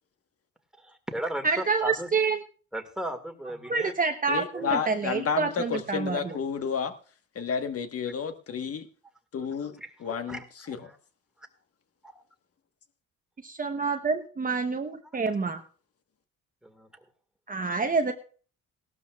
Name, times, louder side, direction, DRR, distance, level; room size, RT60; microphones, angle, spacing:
voice 1, 0.8-2.1 2.7-3.9 4.5-4.8 9.8-10.4 10.8-11.0 12.0-12.2 16.6-17.0, right 1 dB, ahead, 4 dB, 1.9 m, -36 dB
voice 2, 1.4-2.4 3.7-6.4 13.4-15.6 17.5-18.1, right 4 dB, 30° right, 5 dB, 0.9 m, -27 dB
voice 3, 4.3-6.9 7.3-8.9 9.3-9.7 10.0-10.4 10.7-10.8, left 6 dB, 50° left, 8 dB, 1.4 m, -30 dB
18.0 x 12.5 x 2.3 m, 0.40 s
cardioid pair, 90°, 30 cm